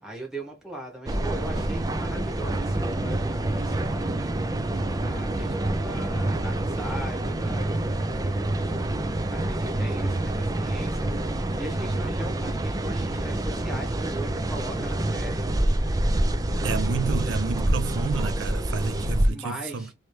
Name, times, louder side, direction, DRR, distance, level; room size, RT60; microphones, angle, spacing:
voice 1, 0.0-4.1 5.0-9.0 9.3-15.4 19.3-19.9, right 1 dB, 5° right, 1.3 m, -39 dB
sound 1, 1.1-19.3, right 1 dB, 20° right, 0.4 m, -27 dB
voice 2, 16.6-19.9, right 5 dB, 85° right, 0.5 m, -30 dB
3.2 x 3.1 x 3.2 m
head